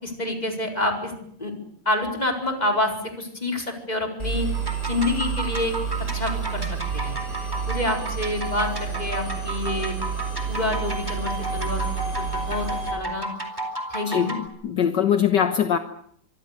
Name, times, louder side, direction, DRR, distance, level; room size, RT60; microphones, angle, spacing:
voice 1, 0.0-1.1 1.4-1.5 1.8-4.5 4.8-5.7 6.1-6.7 6.9-7.2 7.7-9.9 10.5-11.8 12.2-13.3 13.9-14.4, left 2 dB, 20° left, 2 dB, 4.8 m, -27 dB
Engine, 4.2-12.9, right 7 dB, 40° right, 6.1 m, -30 dB
sound 1, 4.5-14.5, right 1 dB, 10° right, 4.1 m, -33 dB
voice 2, 14.1-15.8, left 8 dB, 65° left, 8 dB, 1.7 m, -22 dB
25.5 x 24.0 x 6.7 m, 0.67 s
omnidirectional pair, 2.1 m